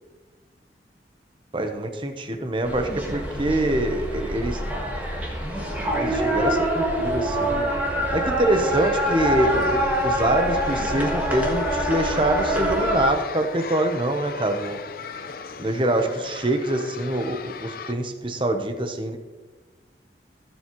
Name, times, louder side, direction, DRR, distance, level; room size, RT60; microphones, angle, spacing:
voice 1, 1.5-4.6 5.9-7.7 8.1-14.8 15.6-19.2, right 1 dB, 30° right, 6 dB, 0.9 m, -25 dB
sound 1, 2.6-13.1, equal, 10° right, 1.6 m, -25 dB
sound 2, 8.5-17.9, left 5 dB, 55° left, 0.5 m, -38 dB
15.5 x 7.4 x 3.1 m, 1.3 s
head